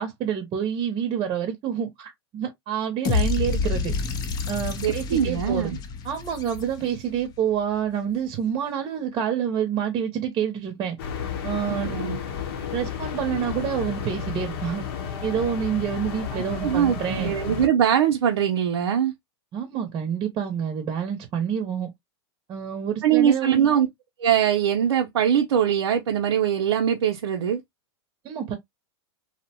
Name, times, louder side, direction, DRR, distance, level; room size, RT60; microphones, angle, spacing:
voice 1, 0.0-3.9 4.5-5.7 6.0-11.0 11.4-11.9 12.7-14.8 15.2-17.3 19.5-21.9 22.5-23.9 28.2-28.5, right 8 dB, 35° right, 0.8 m, -28 dB
sound 1, 3.0-7.2, left 4 dB, 25° left, 0.6 m, -28 dB
voice 2, 4.8-5.8 11.7-12.2 16.3-19.1 23.0-23.9 24.2-27.6, right 9 dB, 80° right, 0.6 m, -22 dB
sound 2, 11.0-17.7, left 7 dB, 60° left, 0.8 m, -32 dB
2.8 x 2.0 x 2.8 m
hypercardioid pair, 120°, 14 cm